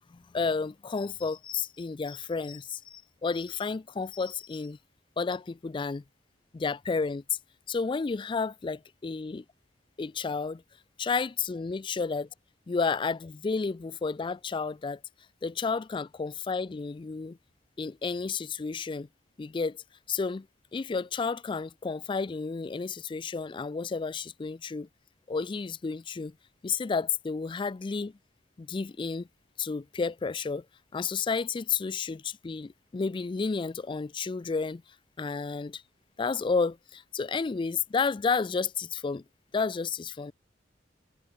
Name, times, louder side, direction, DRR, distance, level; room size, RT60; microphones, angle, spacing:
voice 1, 0.1-4.8 5.2-6.0 6.5-7.4 7.7-9.4 10.0-10.6 11.0-12.3 12.7-15.0 15.4-17.4 17.8-19.1 19.4-19.8 20.1-20.5 20.7-24.9 25.3-26.3 26.6-28.1 28.6-29.3 29.6-30.7 30.9-34.8 35.2-35.8 36.2-39.2 39.5-40.3, left 4 dB, 25° left, 0.3 m, -31 dB
head